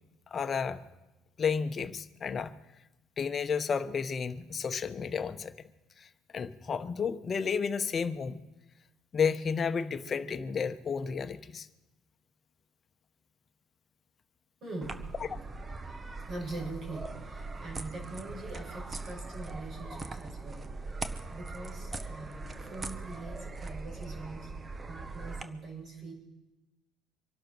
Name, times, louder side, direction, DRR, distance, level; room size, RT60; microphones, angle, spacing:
voice 1, 0.3-0.8 1.4-2.5 3.2-5.5 6.0-8.4 9.1-11.7 15.2-15.3, left 6 dB, 40° left, 9 dB, 1.0 m, -32 dB
voice 2, 14.6-15.2 16.3-26.1, right 2 dB, 50° right, 0 dB, 6.7 m, -43 dB
sound 1, 14.8-25.4, right 3 dB, 30° right, 1.1 m, -41 dB
25.0 x 11.5 x 4.6 m, 1.0 s
hypercardioid pair, 60°, 0 cm